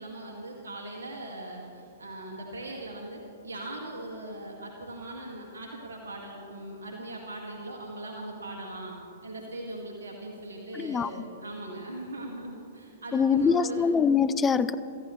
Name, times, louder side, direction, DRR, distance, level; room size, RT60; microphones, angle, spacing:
voice 1, 0.0-8.9 9.2-13.9, right 1 dB, 80° right, 0 dB, 2.0 m, -40 dB
voice 2, 10.7-11.1 13.1-14.7, left 6 dB, 20° left, 15 dB, 0.6 m, -23 dB
25.5 x 14.0 x 3.2 m, 2.8 s
hypercardioid pair, 110°, 0 cm